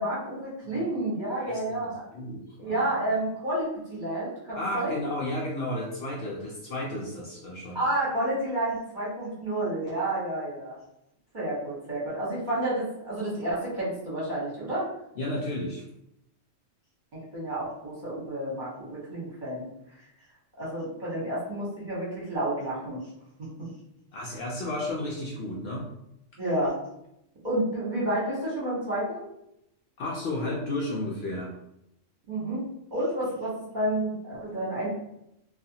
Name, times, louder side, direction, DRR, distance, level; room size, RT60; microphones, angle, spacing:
voice 1, 0.0-2.0 2.6-5.0 7.7-10.8 11.3-14.9 17.1-19.6 20.6-23.0 23.4-23.7 26.4-26.8 27.4-29.3 32.3-32.6 32.9-34.9, right 1 dB, 40° right, -7 dB, 1.0 m, -30 dB
voice 2, 1.4-3.0 4.5-7.8 15.2-15.8 24.1-25.9 30.0-31.5, left 1 dB, 65° left, -3 dB, 0.7 m, -33 dB
2.4 x 2.3 x 2.7 m, 0.81 s
omnidirectional pair, 1.3 m